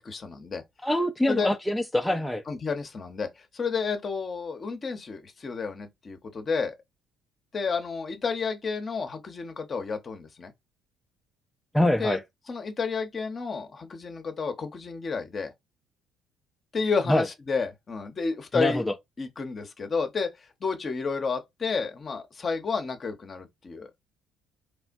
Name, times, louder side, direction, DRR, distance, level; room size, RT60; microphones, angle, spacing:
voice 1, 0.0-0.6 1.3-1.5 2.5-6.7 7.5-10.5 12.0-12.2 12.5-15.5 16.7-18.9 19.2-23.9, left 5 dB, 40° left, 0.7 m, -31 dB
voice 2, 0.8-2.4 11.7-12.2 17.1-17.3 18.5-18.9, left 1 dB, 5° left, 0.4 m, -24 dB
3.2 x 2.1 x 2.5 m
supercardioid pair, 65°, 0 cm